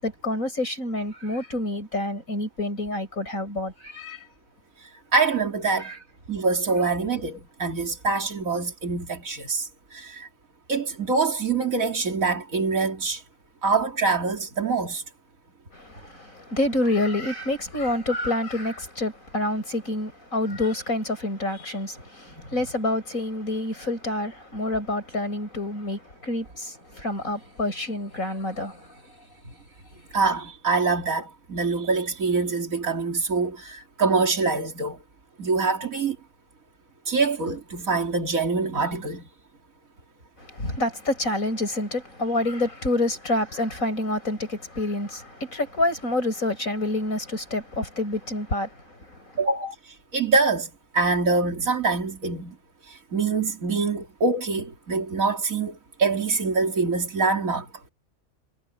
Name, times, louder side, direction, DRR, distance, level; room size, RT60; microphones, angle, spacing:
voice 1, 0.0-4.3 5.8-6.0 15.7-29.2 29.9-30.0 40.4-49.4, left 1 dB, 85° left, 7.9 m, -28 dB
voice 2, 4.8-5.9 6.3-10.3 10.7-13.2 13.6-15.0 30.1-35.0 35.4-36.2 37.1-39.2 49.4-52.6 52.9-57.7, right 4 dB, 85° right, 3.0 m, -25 dB
omnidirectional pair, 1.4 m